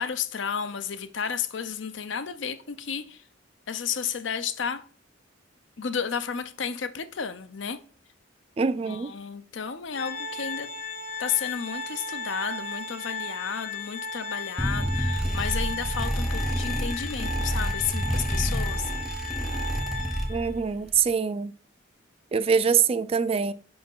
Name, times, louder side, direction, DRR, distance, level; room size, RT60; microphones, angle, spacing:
voice 1, 0.0-3.2 3.7-4.8 5.8-7.8 8.9-10.7 11.2-18.9, left 7 dB, 70° left, 0.6 m, -32 dB
voice 2, 8.6-9.1 20.3-21.5 22.3-23.5, right 6 dB, 30° right, 0.3 m, -24 dB
Organ, 9.9-20.6, left 3 dB, 40° left, 1.0 m, -35 dB
sound 1, 14.6-20.6, equal, ahead, 0.7 m, -28 dB
4.7 x 4.3 x 5.4 m
head